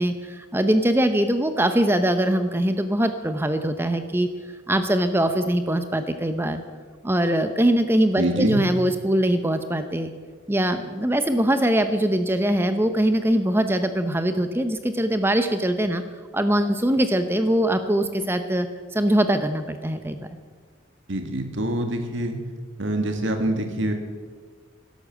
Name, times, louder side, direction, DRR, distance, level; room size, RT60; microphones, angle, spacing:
voice 1, 0.0-4.3 4.7-6.6 7.0-10.1 10.5-16.0 16.3-18.7 18.9-20.3, right 1 dB, 10° right, 9 dB, 0.7 m, -22 dB
voice 2, 8.2-8.6 21.1-22.4 22.8-23.9, right 1 dB, 75° right, 5 dB, 1.8 m, -25 dB
12.0 x 11.5 x 7.4 m, 1.5 s
head